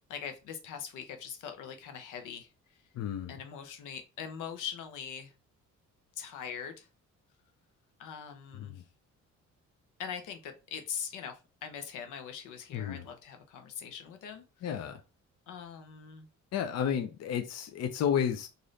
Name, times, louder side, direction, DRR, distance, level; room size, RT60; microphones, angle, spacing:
voice 1, 0.1-2.5 3.3-5.3 6.2-6.9 8.0-8.8 10.0-14.7 15.5-16.3, left 7 dB, 85° left, 0.8 m, -42 dB
voice 2, 2.9-3.3 8.5-8.8 12.7-13.1 14.6-15.0 16.5-18.5, left 8 dB, 60° left, 0.6 m, -32 dB
3.1 x 2.6 x 3.9 m
cardioid pair, 90°, 30 cm